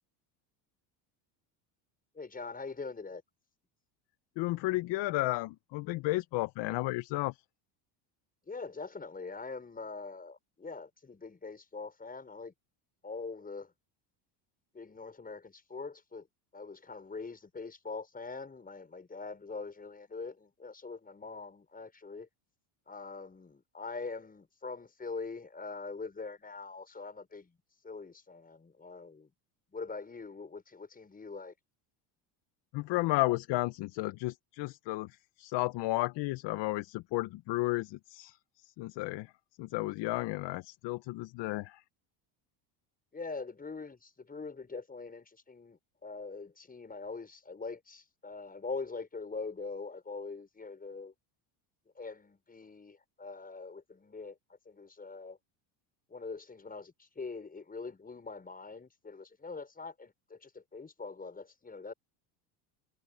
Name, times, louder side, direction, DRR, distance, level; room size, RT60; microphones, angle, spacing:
voice 1, 2.1-3.2 8.4-12.5 13.0-13.7 14.7-16.3 16.5-22.3 22.9-27.6 27.8-29.3 29.7-31.5 43.1-51.1 52.0-54.4 54.7-55.4 56.1-61.9, left 4 dB, 20° left, 6.1 m, -43 dB
voice 2, 4.4-7.4 32.7-38.4 38.6-39.3 39.6-41.8, left 20 dB, 60° left, 0.9 m, -33 dB
supercardioid pair, 115°, 48 cm